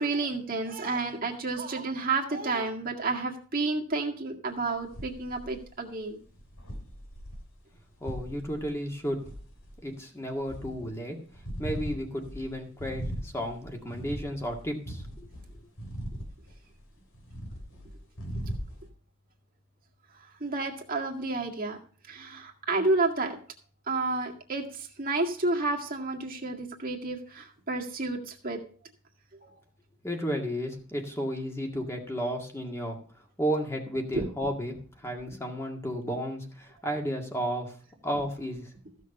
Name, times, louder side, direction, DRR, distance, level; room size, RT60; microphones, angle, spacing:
voice 1, 0.0-6.2 20.4-21.8 22.1-23.4 23.9-28.6 29.4-29.5 34.1-34.3, right 3 dB, 40° right, 0 dB, 2.0 m, -30 dB
sound 1, 4.7-5.6 6.2-9.9 10.2-10.9 11.3-16.9 17.1-18.9, equal, 85° left, 3.6 m, -39 dB
voice 2, 8.0-9.2 9.8-11.2 11.6-15.3 30.0-33.0 33.4-37.7 38.0-38.7, equal, 15° left, 2 dB, 2.0 m, -33 dB
15.0 x 6.5 x 5.5 m, 0.44 s
head